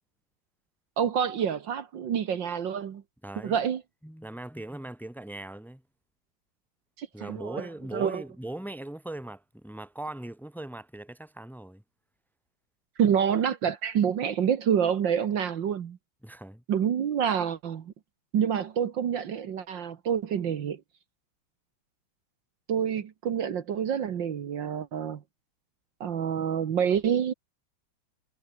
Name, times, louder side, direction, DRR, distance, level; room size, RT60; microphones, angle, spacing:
voice 1, 1.0-3.0 3.4-3.8 7.0-7.7 7.9-8.2 13.0-16.0 16.7-17.9 18.3-20.8 22.7-25.2 26.0-27.3, right 8 dB, 65° right, 2.0 m, -27 dB
voice 2, 3.2-3.6 4.0-5.8 7.1-11.8 16.2-16.6, right 1 dB, ahead, 2.2 m, -40 dB
omnidirectional pair, 2.2 m